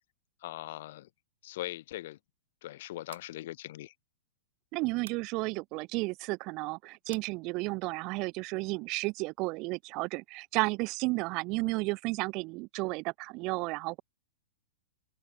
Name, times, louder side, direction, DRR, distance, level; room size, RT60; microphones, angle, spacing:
voice 1, 0.4-1.1 1.4-2.2 2.6-3.9, left 15 dB, 45° left, 1.2 m, -40 dB
sound 1, 3.1-3.4 5.1-5.3 7.1-7.3, right 11 dB, 65° right, 2.8 m, -51 dB
voice 2, 4.7-14.0, right 25 dB, 25° right, 0.6 m, -33 dB
open air
supercardioid pair, 180°, 0 cm